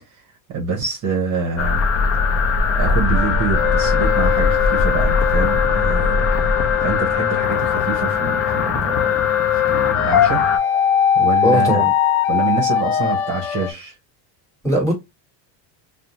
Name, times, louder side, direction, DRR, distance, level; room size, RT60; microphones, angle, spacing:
voice 1, 0.5-1.8 2.7-6.3 6.8-9.1 9.5-10.5 11.1-11.8 12.3-14.0, right 5 dB, 40° right, 0.8 m, -25 dB
sound 1, 1.6-10.6, left 4 dB, 35° left, 0.4 m, -20 dB
sound 2, 3.1-13.7, left 10 dB, 75° left, 0.7 m, -21 dB
voice 2, 11.4-11.9 14.6-14.9, right 1 dB, 5° left, 1.4 m, -19 dB
2.6 x 2.1 x 2.9 m
cardioid pair, 135°, 50 cm